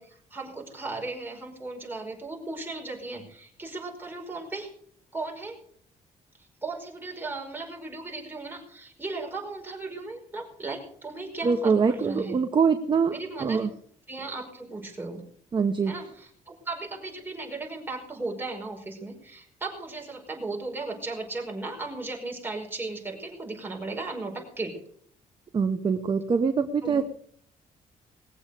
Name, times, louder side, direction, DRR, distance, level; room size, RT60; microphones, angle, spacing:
voice 1, 0.0-4.7 5.1-5.6 6.6-12.4 13.1-13.7 14.1-15.2 15.8-24.8 26.8-27.0, right 3 dB, 15° right, 0 dB, 5.3 m, -36 dB
voice 2, 11.4-13.7 15.5-15.9 25.5-27.0, right 5 dB, 35° right, 8 dB, 0.9 m, -24 dB
20.0 x 7.9 x 6.7 m, 0.63 s
cardioid pair, 120°, 14 cm